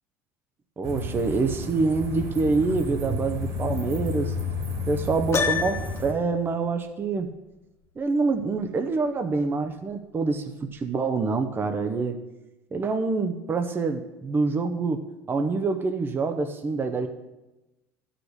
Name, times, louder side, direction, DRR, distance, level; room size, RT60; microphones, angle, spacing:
voice 1, 0.8-4.3 4.9-7.3 8.0-12.2 12.7-17.1, right 4 dB, 30° right, 7 dB, 0.8 m, -26 dB
sound 1, 0.8-6.1, left 2 dB, 65° right, 2.9 m, -31 dB
Piano, 5.3-6.2, left 5 dB, 35° left, 0.9 m, -26 dB
11.5 x 5.1 x 6.5 m, 1.0 s
hypercardioid pair, 80°, 8 cm